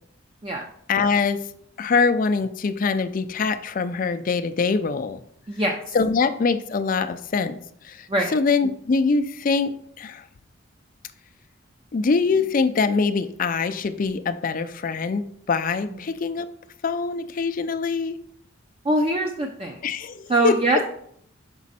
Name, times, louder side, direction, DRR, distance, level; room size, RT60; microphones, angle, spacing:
voice 1, 0.9-1.5 1.8-5.2 5.9-7.6 7.8-10.2 11.9-16.5 16.8-18.2 19.8-20.6, left 4 dB, 40° left, 10 dB, 0.4 m, -23 dB
voice 2, 5.5-5.8 8.1-8.3 18.8-19.8 20.3-20.8, right 1 dB, 25° right, 2 dB, 0.5 m, -22 dB
6.1 x 5.1 x 4.1 m, 0.68 s
head